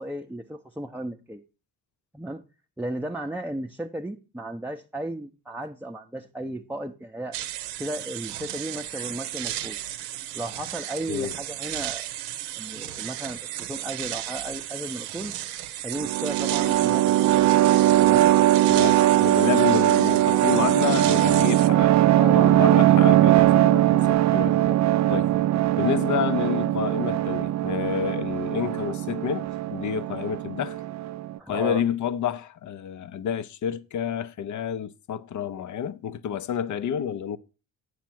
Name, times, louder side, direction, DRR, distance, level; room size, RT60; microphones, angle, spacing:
voice 1, 0.0-1.4 2.1-2.4 2.8-7.4 7.8-9.8 10.3-12.1 12.6-15.3 15.8-17.5 18.0-18.3 22.2-22.6 24.4-24.8 25.3-25.6 31.4-31.8, right 1 dB, 5° right, 0.7 m, -35 dB
sound 1, 7.3-21.7, right 13 dB, 70° right, 0.8 m, -34 dB
sound 2, 15.9-31.4, right 14 dB, 40° right, 0.5 m, -20 dB
voice 2, 18.7-22.0 22.3-24.5 25.1-25.3 25.8-30.8 31.5-37.4, left 9 dB, 45° left, 0.6 m, -29 dB
9.1 x 6.3 x 4.4 m
figure-of-eight pair, 45°, 44 cm